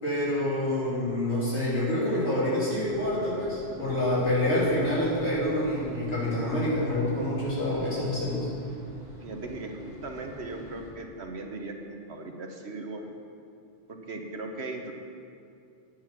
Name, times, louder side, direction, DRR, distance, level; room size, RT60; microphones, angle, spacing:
voice 1, 0.0-8.5, left 1 dB, 75° left, -8 dB, 3.7 m, -27 dB
sound 1, 2.7-10.9, right 1 dB, 25° right, 2.5 m, -45 dB
voice 2, 9.2-13.1 13.9-14.9, right 2 dB, 70° right, 3 dB, 1.3 m, -38 dB
10.0 x 9.7 x 6.0 m, 2.4 s
omnidirectional pair, 1.2 m